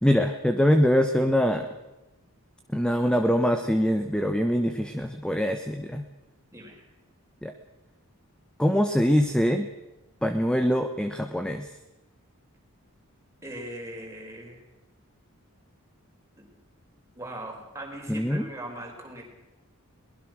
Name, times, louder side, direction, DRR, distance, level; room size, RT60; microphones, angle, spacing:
voice 1, 0.0-1.7 2.7-6.0 7.4-7.5 8.6-9.7 10.2-11.7 18.1-18.5, equal, 5° left, 7 dB, 1.1 m, -23 dB
voice 2, 6.5-6.8 13.4-14.6 16.4-16.5 17.2-19.2, right 1 dB, 15° right, 0 dB, 5.2 m, -39 dB
22.5 x 20.5 x 6.3 m, 1.0 s
head